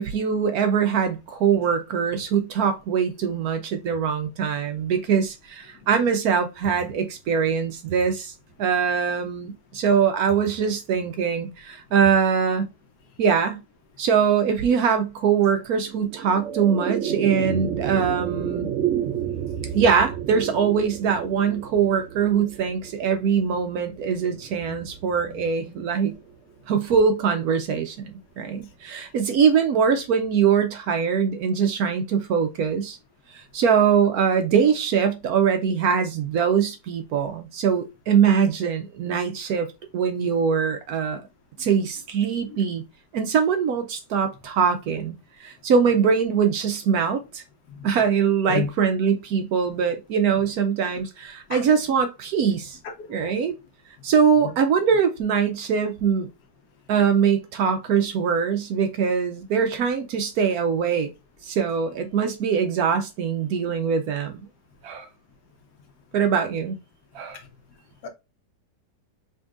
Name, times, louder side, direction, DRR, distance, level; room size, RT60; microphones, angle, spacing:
voice 1, 0.0-8.3 8.6-12.7 13.2-13.6 14.0-18.7 19.7-26.1 26.7-33.0 33.3-41.2 41.6-42.8 43.1-45.1 45.4-47.4 47.8-52.8 53.1-53.6 54.0-56.3 56.9-61.1 61.4-64.5 64.8-65.1 66.1-66.8 67.1-67.4, right 6 dB, 70° right, 1.0 m, -22 dB
sound 1, 15.8-26.3, right 10 dB, 85° right, 0.6 m, -31 dB
voice 2, 53.0-53.3 68.0-68.1, left 6 dB, 70° left, 1.3 m, -29 dB
5.2 x 2.7 x 2.4 m
omnidirectional pair, 1.8 m